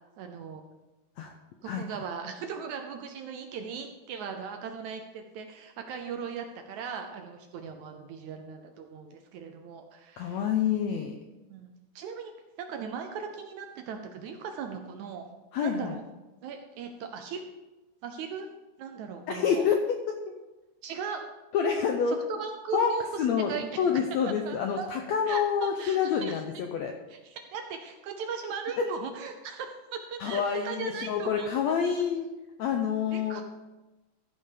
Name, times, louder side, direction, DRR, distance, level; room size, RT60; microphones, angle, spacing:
voice 1, 0.2-0.6 1.6-10.4 11.5-12.3 12.6-15.3 15.6-16.0 16.4-17.4 18.0-18.5 18.8-19.7 20.8-21.2 22.1-23.2 23.5-23.8 24.5-24.9 25.3-26.3 27.1-31.5 33.1-33.4, right 6 dB, 75° right, 5 dB, 1.8 m, -38 dB
voice 2, 1.6-2.0 10.2-11.2 15.5-16.0 19.3-19.8 20.1-20.2 21.5-22.2 22.7-22.9 23.2-26.9 28.8-28.9 30.2-32.3 32.6-33.4, left 7 dB, 85° left, 3 dB, 1.6 m, -27 dB
14.0 x 5.6 x 4.9 m, 1.1 s
omnidirectional pair, 3.9 m